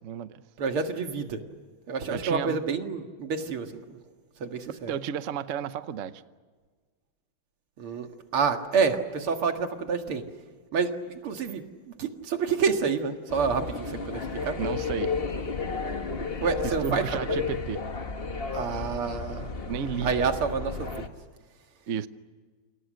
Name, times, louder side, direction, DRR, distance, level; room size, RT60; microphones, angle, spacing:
voice 1, 0.0-0.4 2.1-2.6 4.9-6.2 14.6-15.2 16.6-17.8 19.7-20.1 21.9-22.1, right 8 dB, 55° right, 12 dB, 0.9 m, -32 dB
voice 2, 0.6-1.4 1.9-4.0 4.4-4.9 7.8-8.1 8.3-10.2 10.7-14.6 16.4-17.4 18.5-19.5 20.0-21.0, right 5 dB, 85° right, 5 dB, 2.8 m, -28 dB
sound 1, 13.3-21.1, left 4 dB, 30° left, 1.5 m, -33 dB
29.0 x 27.0 x 6.5 m, 1.5 s
omnidirectional pair, 2.4 m